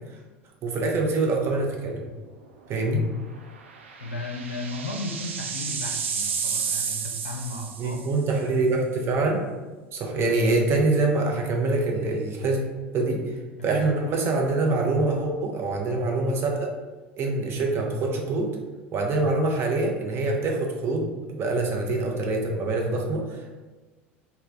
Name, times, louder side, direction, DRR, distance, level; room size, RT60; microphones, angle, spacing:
voice 1, 0.6-2.0 2.7-3.0 7.8-9.4 9.9-12.6 12.9-13.3 13.6-16.7 17.2-18.5 18.9-23.5, right 2 dB, 40° right, 1 dB, 0.7 m, -25 dB
sound 1, 1.4-1.7 2.1-2.2 3.6-8.2, right 6 dB, 75° right, 0.4 m, -31 dB
voice 2, 4.0-8.0 13.6-13.8, left 2 dB, 85° left, 2 dB, 0.4 m, -35 dB
3.2 x 2.2 x 3.8 m, 1.3 s
figure-of-eight pair, 75°, 7 cm